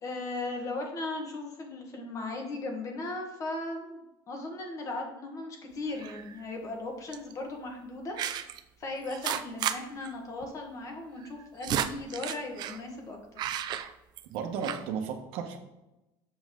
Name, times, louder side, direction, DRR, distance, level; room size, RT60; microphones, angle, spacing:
voice 1, 0.0-8.2 8.8-13.5, left 2 dB, 35° left, 2 dB, 1.5 m, -37 dB
sound 1, 6.0-6.4 7.1-7.3 8.2-8.6 9.1-9.8 10.0-10.1 10.4-10.5 11.2-12.8 13.4-14.4 14.6-14.8, right 10 dB, 45° right, 0.5 m, -33 dB
voice 2, 14.3-15.6, right 6 dB, 70° right, 4 dB, 1.2 m, -34 dB
7.1 x 5.4 x 3.8 m, 0.98 s
cardioid pair, 130°, 10 cm